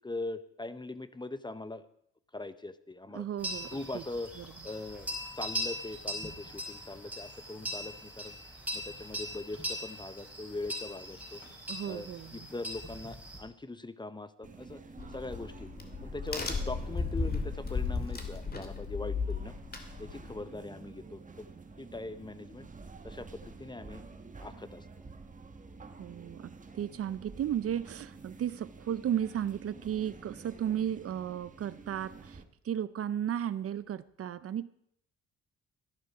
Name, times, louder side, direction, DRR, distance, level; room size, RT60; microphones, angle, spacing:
voice 1, 0.0-1.8 2.3-3.3 3.7-4.3 4.6-8.4 8.7-11.4 11.8-14.8 15.1-15.7 16.0-19.6 20.0-21.5 21.8-22.7 23.0-24.0 24.4-24.9, left 2 dB, 15° left, 13 dB, 0.8 m, -41 dB
voice 2, 3.1-4.0 4.4-4.5 11.7-12.5 26.0-34.7, right 10 dB, 50° right, 16 dB, 0.6 m, -34 dB
sound 1, 3.4-13.4, equal, 5° right, 6.0 m, -40 dB
sound 2, 14.4-32.4, right 4 dB, 25° right, 1.3 m, -50 dB
Crack, 15.0-20.4, left 4 dB, 30° left, 2.4 m, -35 dB
13.0 x 11.0 x 4.9 m, 0.71 s
cardioid pair, 90°, 30 cm